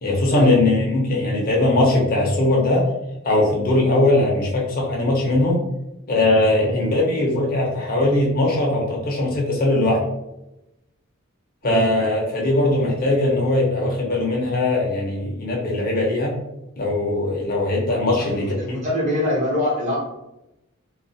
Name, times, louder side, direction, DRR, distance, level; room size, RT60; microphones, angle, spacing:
voice 1, 0.0-2.8 3.2-5.6 6.1-10.0 11.6-16.3 16.8-18.8, left 2 dB, 45° left, -2 dB, 0.6 m, -20 dB
voice 2, 18.2-20.0, left 1 dB, 35° right, -5 dB, 0.9 m, -25 dB
2.3 x 2.3 x 2.6 m, 0.91 s
head